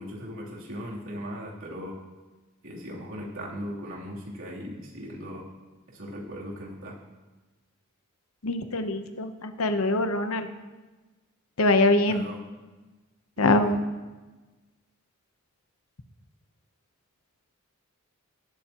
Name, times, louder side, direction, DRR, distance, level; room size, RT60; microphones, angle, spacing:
voice 1, 0.0-2.0 2.6-5.4 5.9-7.0 12.1-12.4 13.4-13.8, equal, 65° right, -4 dB, 3.2 m, -38 dB
voice 2, 8.4-10.5 11.6-12.2 13.4-13.8, left 2 dB, 80° left, 8 dB, 0.9 m, -23 dB
17.0 x 12.0 x 3.0 m, 1.2 s
head